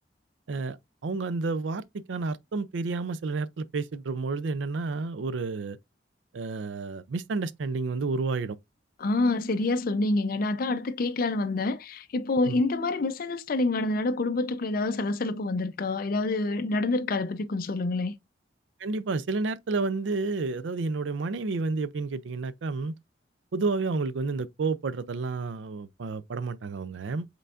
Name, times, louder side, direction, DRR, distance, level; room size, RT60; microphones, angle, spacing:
voice 1, 1.0-5.8 6.3-8.6 12.4-12.6 18.8-23.0 23.5-27.3, right 3 dB, 80° right, 0.5 m, -30 dB
voice 2, 9.0-18.1, left 2 dB, 50° left, 0.5 m, -27 dB
5.4 x 3.8 x 2.4 m
head